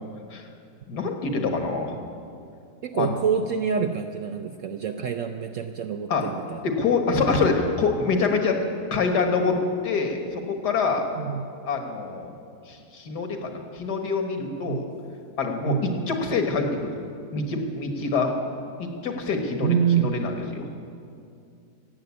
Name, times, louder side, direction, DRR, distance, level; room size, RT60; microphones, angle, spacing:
voice 1, 0.9-1.9 2.9-3.2 6.1-6.3 6.6-8.6 8.9-11.0 11.6-12.3 12.7-14.9 15.4-16.9 17.3-18.3 18.8-20.7, left 4 dB, 65° left, 4 dB, 1.9 m, -25 dB
voice 2, 2.8-6.7 11.2-11.5 14.6-14.9 15.7-16.1 19.6-20.2, right 7 dB, 70° right, 7 dB, 0.7 m, -26 dB
15.5 x 7.9 x 9.5 m, 2.5 s
omnidirectional pair, 1.9 m